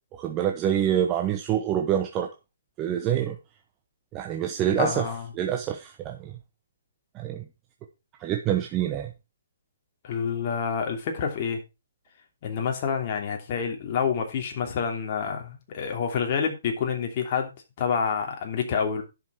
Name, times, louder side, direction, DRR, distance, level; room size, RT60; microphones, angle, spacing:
voice 1, 0.2-2.3 2.8-3.4 4.1-6.4 7.1-7.4 8.2-9.1, right 10 dB, 20° right, 4 dB, 1.0 m, -26 dB
voice 2, 4.8-5.3 10.0-11.6 12.4-17.5 17.8-19.0, left 6 dB, 35° left, 2 dB, 2.9 m, -28 dB
11.0 x 6.3 x 4.7 m, 0.26 s
hypercardioid pair, 160°, 0 cm